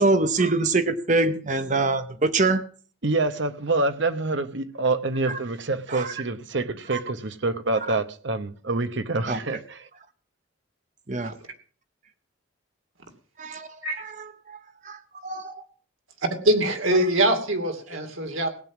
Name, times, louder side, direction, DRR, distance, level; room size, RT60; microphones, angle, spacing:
voice 1, 0.0-2.6 5.3-5.4 5.9-6.1 6.9-7.0 7.9-8.0 9.3-9.4 11.1-11.3 13.4-13.7 14.0-14.6 14.8-15.7, right 3 dB, 35° right, 0.9 m, -24 dB
voice 2, 3.0-9.9, right 3 dB, 60° right, 1.1 m, -26 dB
voice 3, 16.2-18.5, right 1 dB, 80° right, 2.7 m, -23 dB
17.0 x 9.1 x 6.1 m
head